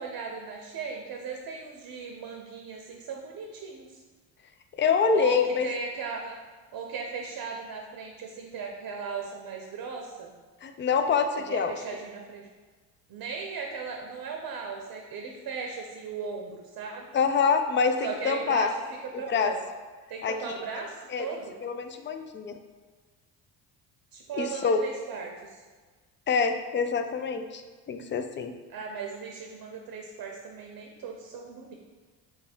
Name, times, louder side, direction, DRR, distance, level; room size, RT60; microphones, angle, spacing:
voice 1, 0.0-4.0 5.1-6.4 6.7-10.3 11.5-12.5 13.1-17.0 18.0-18.7 19.0-19.6 20.1-21.6 24.1-25.6 28.7-31.7, right 5 dB, 50° right, 2 dB, 0.7 m, -37 dB
voice 2, 4.8-5.7 10.6-11.7 17.1-18.7 19.1-19.5 20.2-20.5 21.1-21.3 21.6-22.5 24.4-24.8 26.3-27.6 27.9-28.5, left 5 dB, 25° left, 7 dB, 0.4 m, -26 dB
3.4 x 3.3 x 4.3 m, 1.4 s
supercardioid pair, 70°, 45 cm